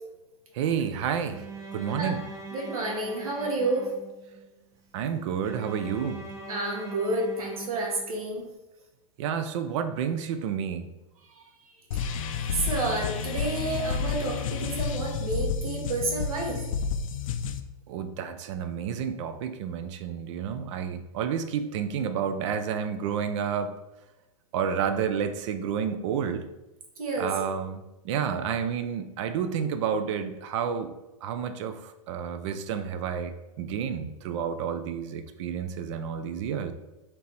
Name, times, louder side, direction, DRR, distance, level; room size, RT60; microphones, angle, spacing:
voice 1, 0.5-1.5 1.7-2.2 4.9-6.2 9.2-10.9 17.9-23.7 24.5-26.5 27.2-30.9 31.2-36.7, right 7 dB, 55° right, 9 dB, 0.5 m, -30 dB
Bowed string instrument, 1.2-4.4 5.4-8.4, right 3 dB, 15° right, 0.7 m, -42 dB
voice 2, 2.5-3.9 6.5-8.4 11.9-12.1 12.5-16.6 27.0-27.3, right 2 dB, 80° right, 0 dB, 1.1 m, -30 dB
sound 1, 11.9-17.6, left 5 dB, 70° left, 0.4 m, -30 dB
3.3 x 2.9 x 4.0 m, 1.0 s
hypercardioid pair, 115°, 18 cm